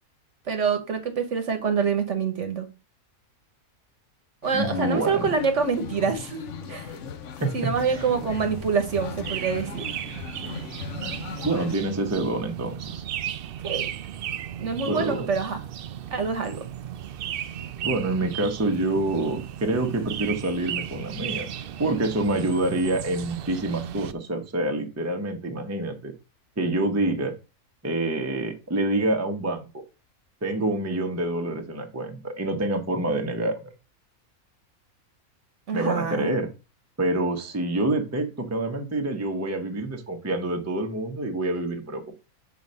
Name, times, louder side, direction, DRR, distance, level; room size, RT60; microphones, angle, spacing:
voice 1, 0.5-2.7 4.4-6.9 7.5-9.9 13.6-13.9 14.6-15.6 16.1-16.7 35.7-36.3, right 5 dB, 55° right, 1.2 m, -26 dB
sound 1, 4.4-11.8, left 7 dB, 60° left, 1.0 m, -38 dB
voice 2, 4.5-5.3 7.4-8.0 11.4-13.0 14.8-15.3 17.8-21.5 21.8-26.1 26.6-27.3 27.8-29.8 30.4-33.7 35.7-36.5 37.0-42.2, right 2 dB, 15° right, 0.8 m, -27 dB
sound 2, 7.7-24.1, right 10 dB, 85° right, 0.5 m, -35 dB
6.2 x 4.1 x 5.2 m
omnidirectional pair, 1.5 m